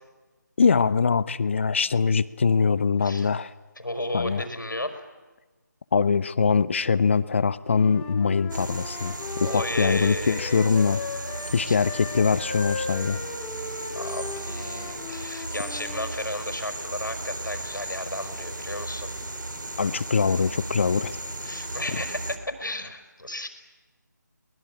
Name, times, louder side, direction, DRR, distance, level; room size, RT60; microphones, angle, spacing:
voice 1, 0.6-3.5 4.1-4.4 5.9-11.0 11.5-13.2 19.8-21.1 21.9-22.0, left 5 dB, 40° left, 17 dB, 0.8 m, -23 dB
voice 2, 3.8-5.0 9.4-10.7 11.7-11.8 13.9-19.1 21.4-23.5, left 1 dB, 90° left, 6 dB, 5.0 m, -33 dB
Wind instrument woodwind instrument, 7.7-11.6 11.8-16.1, left 4 dB, 10° left, 1.8 m, -37 dB
sound 1, 8.5-22.4, right 2 dB, 80° right, 3.3 m, -35 dB
23.5 x 20.5 x 8.9 m, 1.2 s
figure-of-eight pair, 160°, 10 cm